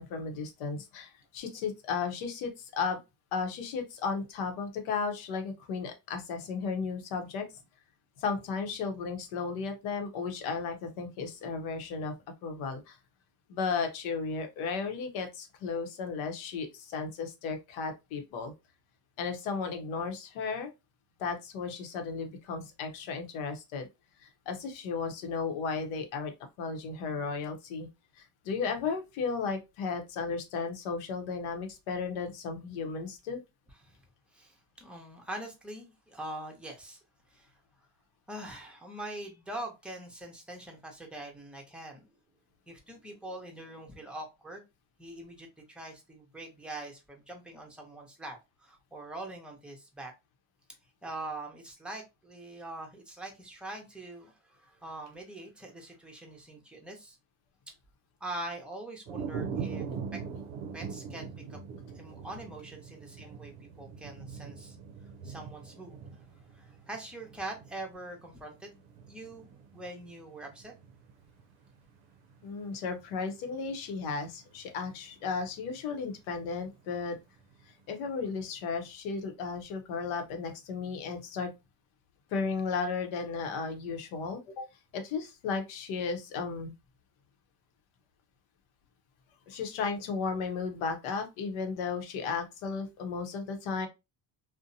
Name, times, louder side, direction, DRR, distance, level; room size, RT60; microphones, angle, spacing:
voice 1, 0.0-3.0 3.3-7.5 8.2-12.1 12.4-13.0 13.5-18.5 19.2-20.7 21.2-23.9 24.2-26.3 26.6-27.9 28.2-33.4 72.4-77.2 77.9-81.5 82.3-84.6 84.9-86.7 89.5-93.9, left 5 dB, 85° left, 0.8 m, -34 dB
voice 2, 34.3-37.0 37.3-37.5 38.3-42.1 42.7-44.6 45.0-50.1 51.0-57.2 58.2-60.2 60.7-61.6 61.9-64.8 65.2-70.7, right 1 dB, ahead, 0.7 m, -43 dB
sound 1, 59.1-78.1 78.6-78.9, right 6 dB, 70° right, 0.6 m, -42 dB
2.6 x 2.1 x 2.6 m
cardioid pair, 110°, 47 cm